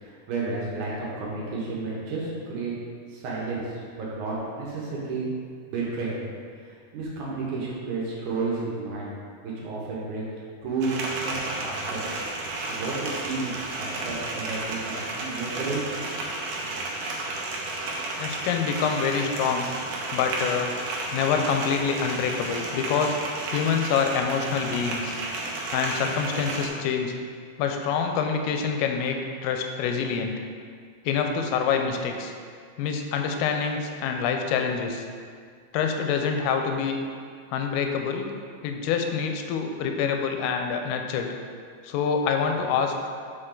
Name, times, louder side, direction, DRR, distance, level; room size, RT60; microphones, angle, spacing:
voice 1, 0.0-2.7 3.1-5.3 5.7-6.3 6.6-9.1 9.4-10.2 10.6-10.9 11.2-12.0 12.6-16.2, right 3 dB, 65° right, -5 dB, 2.1 m, -32 dB
sound 1, 10.8-26.7, right 2 dB, 90° right, 1.7 m, -32 dB
voice 2, 18.2-19.7 20.1-20.7 21.1-23.2 23.5-25.2 25.7-27.2 27.6-29.2 29.4-30.4 31.1-32.3 32.8-35.0 35.7-37.0 37.5-38.3 38.6-41.3 41.8-43.1, left 6 dB, 85° left, 4 dB, 2.4 m, -26 dB
6.6 x 4.4 x 3.8 m, 2.1 s
omnidirectional pair, 4.6 m